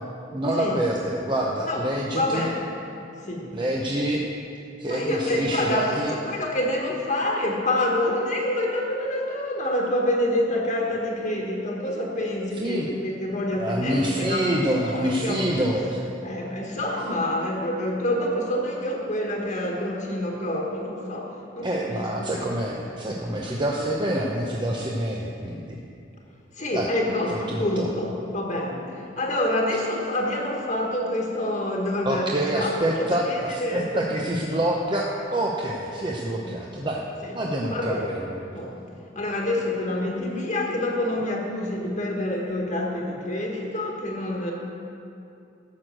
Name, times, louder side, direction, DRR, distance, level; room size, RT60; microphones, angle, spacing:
voice 1, 0.3-2.5 3.5-4.2 4.8-6.1 12.6-12.9 13.6-16.0 21.6-25.8 26.7-26.9 27.3-27.9 32.1-37.0 37.3-38.2, right 1 dB, 25° right, -2 dB, 0.8 m, -26 dB
voice 2, 1.6-2.7 3.2-3.5 4.8-15.9 16.2-22.5 23.3-23.4 23.8-23.9 26.5-34.3 37.2-37.4 37.7-38.1 38.5-38.8 39.1-44.5, left 1 dB, 40° left, -1 dB, 1.5 m, -27 dB
12.5 x 6.4 x 7.6 m, 2.7 s
head